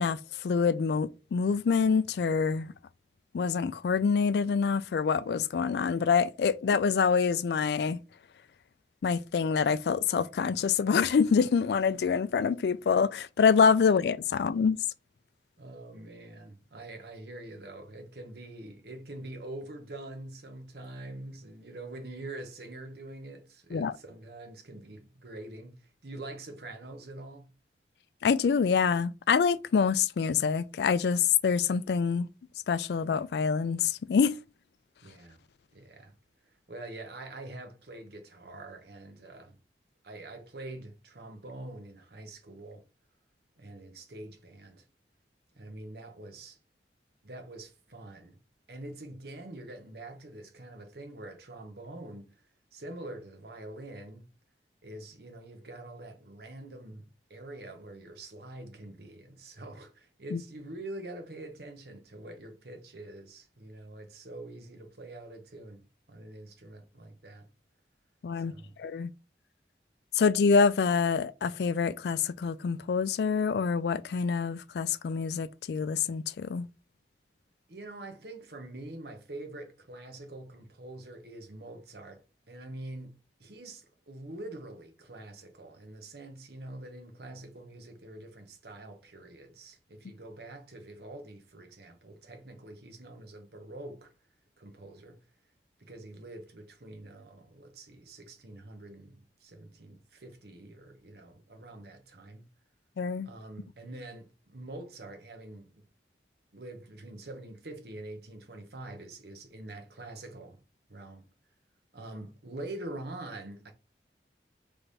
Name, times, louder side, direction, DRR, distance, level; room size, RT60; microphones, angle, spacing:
voice 1, 0.0-2.7 3.3-8.0 9.0-14.8 23.7-23.9 28.2-32.3 32.7-34.3 60.3-60.4 68.2-68.5 68.8-69.1 70.1-76.7 103.0-103.3, left 6 dB, 70° left, 0.3 m, -26 dB
voice 2, 15.6-25.8 26.0-27.5 35.0-35.4 35.7-36.1 36.7-39.6 40.0-42.8 43.6-44.8 45.5-46.6 47.2-48.4 48.7-52.4 52.7-54.2 54.8-67.5 68.4-68.8 77.7-94.1 94.6-95.2 95.8-102.5 103.2-105.8 106.5-110.6 110.9-111.2 111.9-113.7, right 2 dB, 65° right, 1.0 m, -45 dB
4.0 x 3.4 x 3.4 m
head